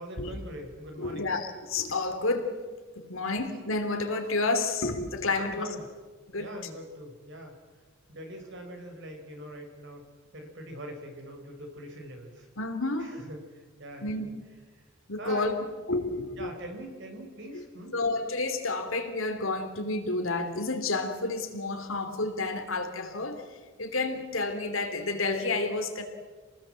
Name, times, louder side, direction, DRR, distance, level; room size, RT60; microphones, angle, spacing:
voice 1, 0.0-1.3 5.3-5.8 6.4-7.6 8.1-10.1 10.3-12.5 13.0-14.3 15.2-15.5 16.4-17.9, right 1 dB, 60° right, 3 dB, 4.9 m, -42 dB
voice 2, 1.0-2.6 3.0-5.7 6.3-6.5 12.6-13.1 14.0-14.3 15.1-15.5 15.9-16.5 17.5-17.6 17.9-23.4 23.8-26.0, left 3 dB, 70° left, 5 dB, 3.1 m, -30 dB
28.0 x 19.5 x 7.8 m, 1.4 s
head